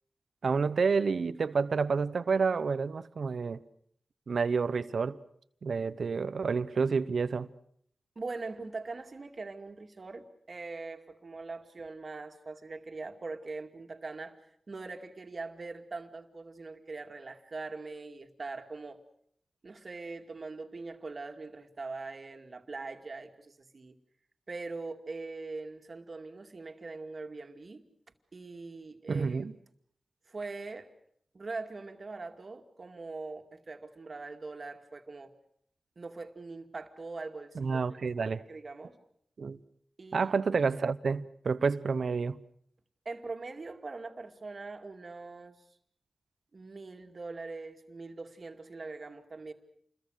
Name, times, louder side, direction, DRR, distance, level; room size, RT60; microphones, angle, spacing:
voice 1, 0.4-3.6 4.3-5.2 5.6-7.5 29.1-29.5 37.6-38.4 39.4-39.6 40.1-42.4, right 5 dB, 70° right, 0.9 m, -29 dB
voice 2, 8.2-14.4 14.7-19.0 19.6-24.0 24.5-27.8 28.3-29.4 30.3-30.9 31.3-35.3 36.0-39.0 40.0-40.3 43.0-45.7 46.5-49.5, right 3 dB, 50° right, 2.3 m, -42 dB
28.0 x 22.0 x 6.5 m
cardioid pair, 70°, 0 cm